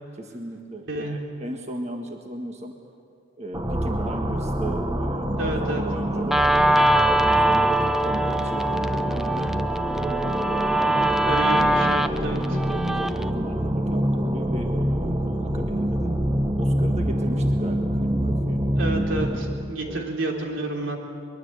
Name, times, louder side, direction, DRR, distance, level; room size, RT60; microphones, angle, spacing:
voice 1, 0.2-2.7 3.4-6.4 7.0-9.5 9.9-11.6 12.5-16.1 16.6-18.6 19.8-20.0, right 1 dB, 35° right, 3 dB, 1.6 m, -36 dB
voice 2, 0.9-1.2 5.4-5.8 11.0-12.6 18.7-21.0, right 1 dB, 90° right, 1 dB, 3.6 m, -30 dB
sound 1, 3.5-19.7, equal, 20° right, 1.2 m, -26 dB
Guitar, 6.3-13.3, right 1 dB, ahead, 0.5 m, -22 dB
23.5 x 22.0 x 8.1 m, 2.4 s
head